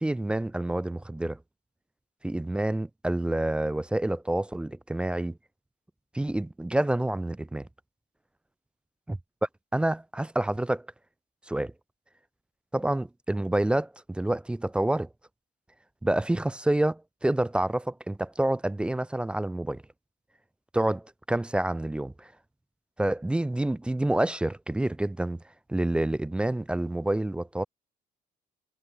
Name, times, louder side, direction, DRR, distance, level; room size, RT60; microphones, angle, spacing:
voice 1, 0.0-1.4 2.2-5.4 6.1-7.7 9.1-9.2 9.7-10.9 11.5-11.7 12.7-15.1 16.0-19.8 20.7-22.3 23.0-25.4 25.7-27.7, right 1 dB, 5° right, 0.3 m, -28 dB
cardioid pair, 110°, 17 cm